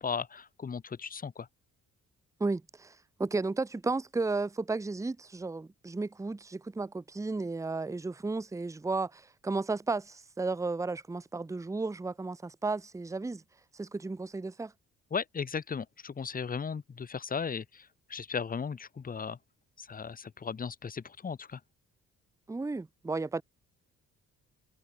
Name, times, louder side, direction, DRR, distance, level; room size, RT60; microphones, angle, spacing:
voice 1, 0.0-1.5 15.1-19.4 19.8-21.6, left 6 dB, 30° left, 1.0 m, -36 dB
voice 2, 2.4-13.4 13.7-14.7 22.5-23.4, right 3 dB, 10° right, 0.7 m, -33 dB
cardioid pair, 90°, 30 cm